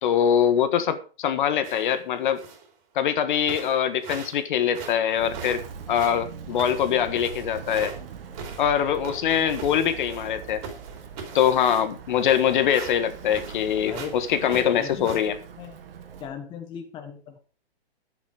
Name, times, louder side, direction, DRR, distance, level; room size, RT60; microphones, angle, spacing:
voice 1, 0.0-2.4 2.9-5.6 5.9-7.9 8.6-10.6 11.3-15.4, left 9 dB, 50° left, 1.5 m, -23 dB
sound 1, 1.6-2.0 2.4-2.7 3.1-3.2 3.5-4.4 4.7-8.0 8.3-10.4 10.6-13.6 13.9-14.2 14.5-15.2, right 5 dB, 30° right, 3.2 m, -40 dB
Walk footsteps, 5.1-16.3, right 6 dB, 65° right, 2.0 m, -41 dB
voice 2, 13.8-14.2 14.4-15.2 15.6-15.8 16.2-17.4, left 6 dB, 15° left, 1.1 m, -37 dB
11.0 x 8.9 x 4.9 m
hypercardioid pair, 155°, 31 cm